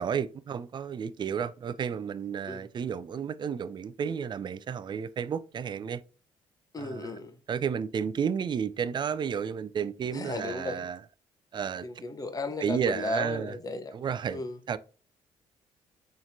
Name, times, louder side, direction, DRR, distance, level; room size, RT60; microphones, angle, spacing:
voice 1, 0.0-6.0 6.8-7.1 7.5-11.0 11.5-11.9 12.6-13.5 13.9-14.4 14.7-14.8, right 7 dB, 40° right, 0.4 m, -32 dB
voice 2, 6.7-7.4 10.1-10.9 11.8-13.9 14.3-14.6, left 2 dB, 30° left, 0.8 m, -35 dB
3.9 x 3.1 x 2.7 m
supercardioid pair, 60°, 12 cm